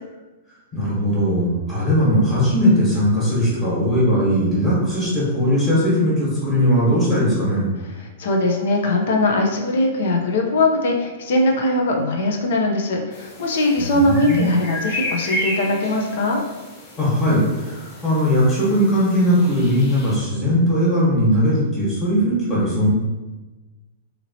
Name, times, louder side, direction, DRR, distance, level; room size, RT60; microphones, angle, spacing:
voice 1, 0.7-7.6 13.8-14.5 17.0-22.9, equal, 20° left, -9 dB, 1.3 m, -19 dB
voice 2, 8.2-16.4, left 2 dB, 70° left, 1 dB, 0.7 m, -20 dB
sound 1, 13.1-20.2, left 1 dB, 35° left, 0.9 m, -33 dB
2.9 x 2.9 x 2.8 m, 1.1 s
hypercardioid pair, 150°, 0 cm